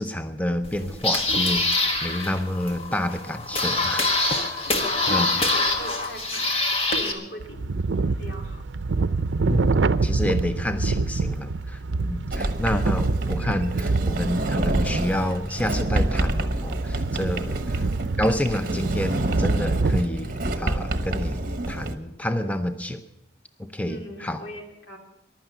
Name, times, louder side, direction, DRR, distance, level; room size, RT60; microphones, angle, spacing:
voice 1, 0.0-4.6 5.1-5.3 9.5-17.5 18.2-23.0 23.6-24.4, left 1 dB, 10° left, 8 dB, 0.6 m, -29 dB
sound 1, 0.6-7.1, left 2 dB, 35° left, 1.6 m, -25 dB
voice 2, 4.7-6.5 6.9-7.7 8.0-8.6 17.3-17.7 23.8-25.0, right 1 dB, 80° left, 3 dB, 2.7 m, -40 dB
sound 2, 7.4-20.0, right 3 dB, 85° right, 0.5 m, -26 dB
Sliding door, 12.3-21.9, right 1 dB, 50° right, 1.0 m, -28 dB
15.0 x 11.5 x 6.8 m, 0.91 s
head